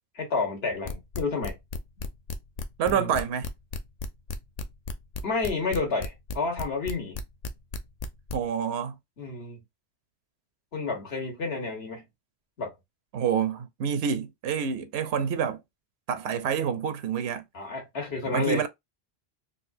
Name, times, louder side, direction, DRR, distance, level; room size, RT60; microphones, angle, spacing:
voice 1, 0.1-1.5 2.9-3.2 5.2-7.2 9.2-9.6 10.7-12.1 12.6-12.7 17.5-18.6, left 3 dB, 80° left, 1.5 m, -30 dB
sound 1, 0.8-8.4, left 4 dB, 50° left, 0.5 m, -33 dB
voice 2, 2.8-3.5 8.3-9.0 13.1-15.6 16.1-17.4 18.3-18.7, right 7 dB, 85° right, 0.8 m, -27 dB
4.0 x 2.3 x 2.6 m
omnidirectional pair, 1.0 m